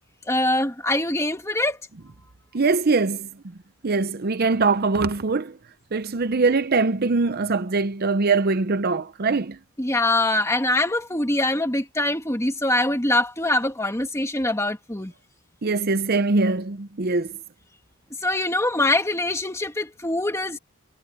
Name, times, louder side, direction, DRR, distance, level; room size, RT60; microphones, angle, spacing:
voice 1, 0.3-1.8 9.8-15.1 18.2-20.6, left 2 dB, 15° left, 1.7 m, -23 dB
voice 2, 2.5-3.3 3.8-5.5 5.9-9.6 15.6-17.3, right 3 dB, 45° right, 0.6 m, -22 dB
head